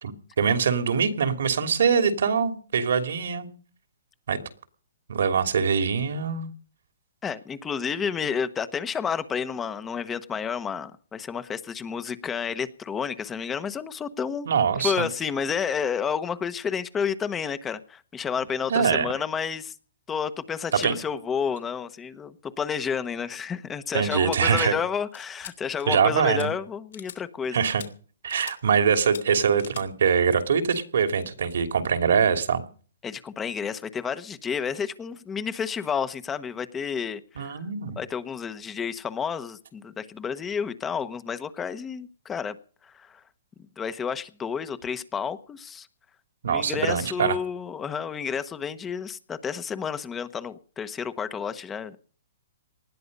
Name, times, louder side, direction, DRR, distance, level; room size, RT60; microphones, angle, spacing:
voice 1, 0.0-3.5 4.3-4.4 5.1-6.5 14.5-15.1 18.7-19.1 20.8-20.9 23.9-24.7 25.9-26.5 27.5-27.8 28.2-32.6 37.4-38.0 46.4-47.4, right 6 dB, 75° right, 8 dB, 2.9 m, -23 dB
voice 2, 7.2-14.5 14.8-19.7 20.1-27.6 33.0-37.6 38.0-42.6 42.8-43.2 43.8-45.9 46.5-52.0, left 6 dB, 15° left, 13 dB, 1.1 m, -30 dB
sound 1, 24.5-24.6 25.1-25.5 25.8-26.1 26.4-26.5 26.9-27.2 27.6-27.9 28.3-28.6 29.0-29.2 29.6-29.8, left 8 dB, 75° left, 2.9 m, -42 dB
19.5 x 12.5 x 5.4 m, 0.41 s
hypercardioid pair, 145°, 0 cm